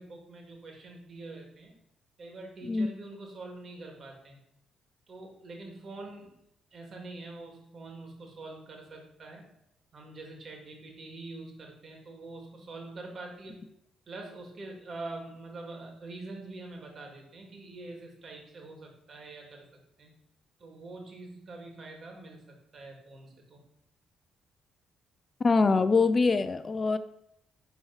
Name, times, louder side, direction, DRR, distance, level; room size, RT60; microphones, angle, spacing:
voice 1, 0.0-1.7 2.2-4.4 5.1-6.3 6.7-9.4 9.9-13.7 14.1-19.6 20.0-20.1 20.6-23.6, right 2 dB, 45° right, 1 dB, 3.1 m, -45 dB
voice 2, 25.4-27.0, left 4 dB, 35° left, 12 dB, 0.5 m, -24 dB
11.0 x 4.7 x 6.4 m, 0.78 s
cardioid pair, 90°, 0 cm